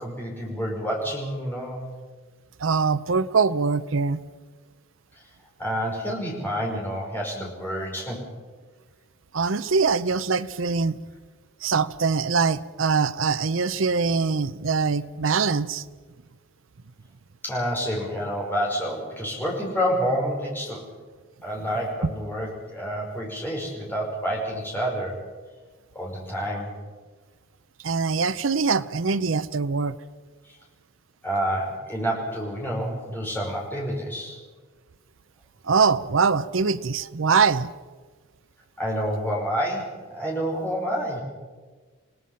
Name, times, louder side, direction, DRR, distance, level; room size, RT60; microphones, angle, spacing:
voice 1, 0.0-1.8 5.6-8.3 17.4-20.9 21.4-25.2 25.9-26.7 30.4-30.6 31.2-34.4 38.8-41.2, equal, 10° left, -3 dB, 5.3 m, -28 dB
voice 2, 2.6-4.2 9.3-11.0 11.6-15.8 27.8-30.0 35.6-37.7, right 5 dB, 65° right, 15 dB, 0.6 m, -23 dB
27.5 x 18.0 x 5.7 m, 1.4 s
head